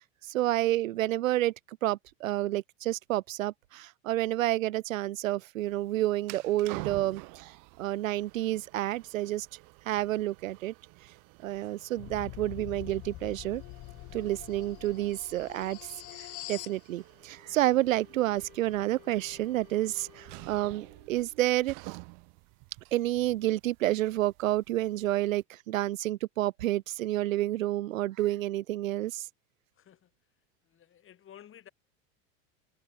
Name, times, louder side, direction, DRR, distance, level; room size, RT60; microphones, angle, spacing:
voice 1, 0.3-9.5 9.9-10.7 11.4-13.6 14.1-15.9 16.2-22.0 22.9-29.3, right 15 dB, 90° right, 0.8 m, -29 dB
sound 1, 5.6-25.4, right 36 dB, 55° right, 3.8 m, -50 dB
sound 2, 12.0-16.8, left 20 dB, 50° left, 6.9 m, -44 dB
Wind instrument woodwind instrument, 17.0-21.4, left 16 dB, 75° left, 7.8 m, -58 dB
voice 2, 29.8-30.1 30.7-31.7, left 10 dB, 30° left, 5.5 m, -53 dB
hypercardioid pair, 110°, 39 cm